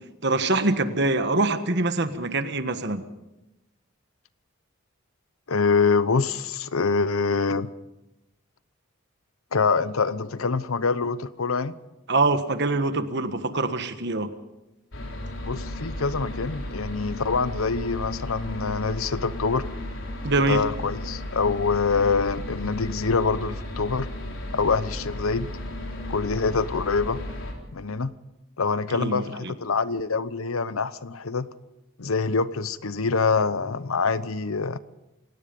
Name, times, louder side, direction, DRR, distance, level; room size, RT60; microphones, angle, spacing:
voice 1, 0.2-3.0 12.1-14.3 20.2-20.6 28.9-29.5, right 2 dB, 55° right, 9 dB, 1.5 m, -24 dB
voice 2, 5.5-7.7 9.5-11.8 15.4-19.6 20.5-24.1 24.5-25.5 26.1-27.2 27.7-28.1 28.6-31.5 32.0-34.8, left 4 dB, 85° left, 15 dB, 0.9 m, -25 dB
sound 1, 14.9-27.5, left 1 dB, 65° left, 3.9 m, -34 dB
27.5 x 17.5 x 5.4 m, 0.96 s
head